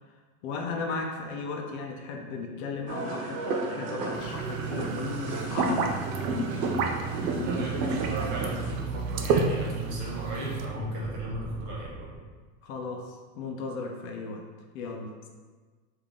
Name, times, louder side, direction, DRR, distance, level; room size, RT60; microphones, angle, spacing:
voice 1, 0.4-5.9 12.6-14.5 14.7-15.3, left 4 dB, 60° left, 2 dB, 0.7 m, -36 dB
sound 1, 2.9-8.7, right 2 dB, 90° right, 1.0 m, -32 dB
sound 2, 3.4-12.2, right 2 dB, 5° left, 0.8 m, -40 dB
sound 3, 4.1-10.7, right 5 dB, 65° right, 0.5 m, -32 dB
voice 2, 7.4-12.1, right 1 dB, 40° right, -4 dB, 1.0 m, -36 dB
3.5 x 2.7 x 3.6 m, 1.4 s
supercardioid pair, 155°, 46 cm